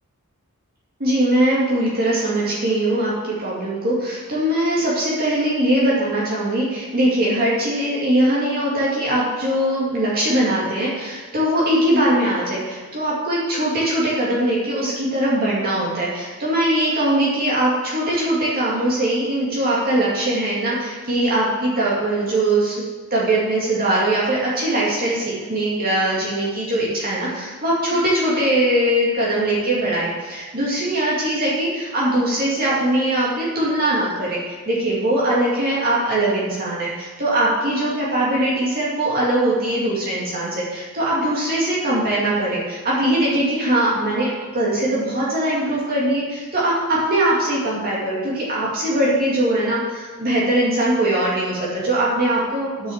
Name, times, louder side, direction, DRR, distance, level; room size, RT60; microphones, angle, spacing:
voice 1, 1.0-22.8 23.1-52.9, right 1 dB, 40° right, -7 dB, 2.3 m, -21 dB
9.7 x 6.2 x 7.3 m, 1.4 s
head